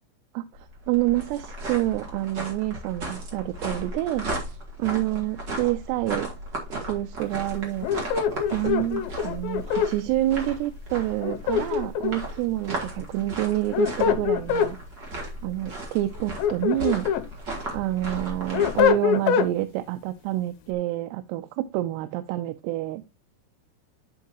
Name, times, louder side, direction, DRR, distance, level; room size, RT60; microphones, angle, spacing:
voice 1, 0.3-6.3 6.8-7.9 8.5-14.8 15.4-17.1 17.7-23.0, right 16 dB, 85° right, 2.7 m, -28 dB
sound 1, 0.5-18.9, right 1 dB, 40° right, 1.7 m, -36 dB
sound 2, 7.8-9.9 11.2-12.3 13.5-14.7 16.2-17.3 17.7-19.5, left 8 dB, 80° left, 2.2 m, -24 dB
9.5 x 5.4 x 2.9 m
omnidirectional pair, 4.8 m